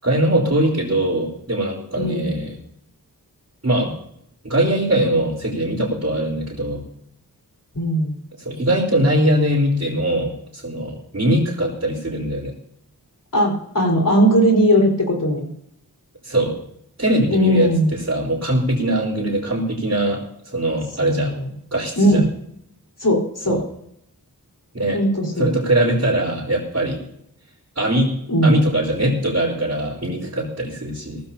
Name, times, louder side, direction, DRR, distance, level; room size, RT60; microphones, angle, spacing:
voice 1, 0.0-2.6 3.6-3.9 4.4-6.8 8.4-12.5 16.2-16.6 17.0-21.3 21.7-22.2 23.5-23.6 24.7-25.0 25.4-27.0 27.7-28.1 28.4-31.2, right 1 dB, 45° right, -7 dB, 4.2 m, -21 dB
voice 2, 2.0-2.3 7.7-8.1 13.3-15.5 17.3-17.9 21.0-21.5 22.0-22.2 23.0-23.6 24.9-25.5 28.3-28.6, equal, 60° left, -1 dB, 4.6 m, -18 dB
18.5 x 14.5 x 2.9 m, 0.72 s
wide cardioid pair, 70°, 36 cm